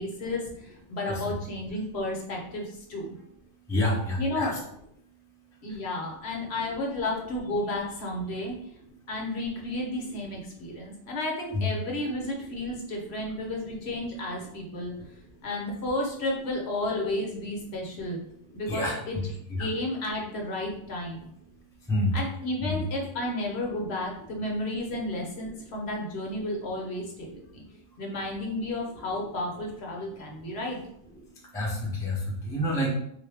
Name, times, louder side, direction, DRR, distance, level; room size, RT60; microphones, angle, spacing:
voice 1, 0.0-3.1 4.2-4.5 5.6-8.5 9.1-14.9 15.4-18.2 18.5-19.2 19.6-21.3 22.1-27.6 28.0-30.8, left 1 dB, 60° left, -1 dB, 0.9 m, -32 dB
voice 2, 3.7-4.6 11.5-11.7 18.7-19.7 21.9-22.1 22.6-22.8 31.5-32.9, left 1 dB, 5° left, -3 dB, 0.6 m, -28 dB
3.7 x 2.5 x 3.4 m, 0.74 s
omnidirectional pair, 1.3 m